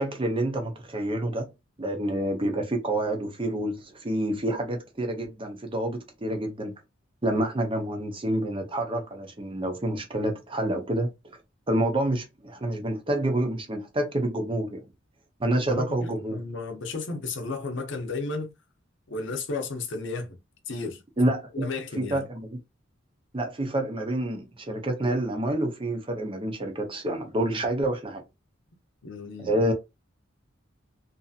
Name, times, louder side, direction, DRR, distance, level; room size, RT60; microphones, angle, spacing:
voice 1, 0.0-1.5 1.8-6.7 7.2-11.1 11.7-14.8 15.4-16.4 21.2-21.7 22.0-22.5 23.3-28.2 29.4-29.7, right 1 dB, 25° right, 0.7 m, -28 dB
voice 2, 15.7-18.5 19.1-20.4 20.7-21.0 21.5-22.2 29.0-29.6, left 3 dB, 65° left, 0.7 m, -33 dB
2.7 x 2.6 x 2.3 m
head